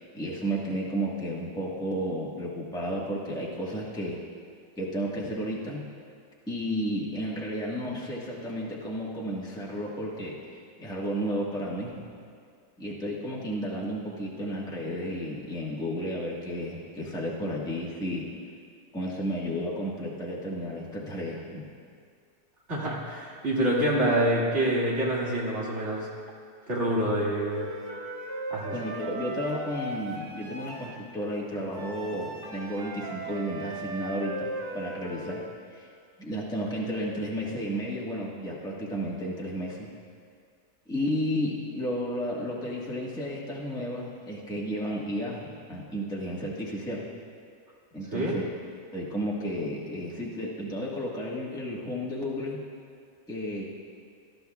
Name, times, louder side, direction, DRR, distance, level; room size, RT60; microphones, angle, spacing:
voice 1, 0.0-4.2 4.8-5.9 6.5-12.0 12.8-18.3 18.9-21.6 28.7-35.4 35.7-35.9 36.2-39.9 40.9-47.1 47.9-48.4 48.9-52.6 53.3-53.6, equal, 5° left, -5 dB, 1.2 m, -32 dB
voice 2, 22.7-26.1 26.7-27.7 28.5-28.7 48.1-48.3, right 1 dB, 45° right, -5 dB, 2.4 m, -26 dB
Wind instrument woodwind instrument, 27.4-30.9 31.7-35.5, right 2 dB, 65° right, 2.2 m, -38 dB
18.5 x 12.0 x 2.3 m, 2.2 s
omnidirectional pair, 1.7 m